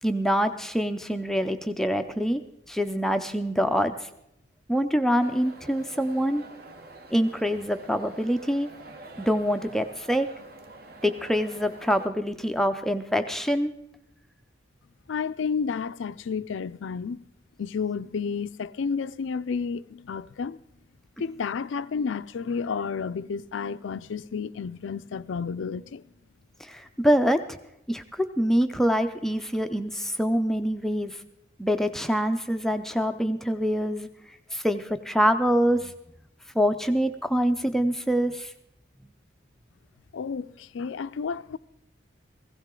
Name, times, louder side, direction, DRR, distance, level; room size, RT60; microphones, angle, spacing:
voice 1, 0.0-2.4 2.7-4.1 4.7-6.4 7.1-8.7 9.2-10.3 11.0-13.7 26.6-27.6 27.9-31.2 31.6-34.1 34.5-35.9 36.5-38.5, equal, ahead, 0.4 m, -25 dB
sound 1, 5.2-12.1, right 2 dB, 50° right, 1.2 m, -47 dB
voice 2, 15.1-17.2 17.6-20.6 21.2-26.0 40.1-41.6, left 5 dB, 80° left, 0.4 m, -31 dB
16.5 x 16.0 x 3.7 m
head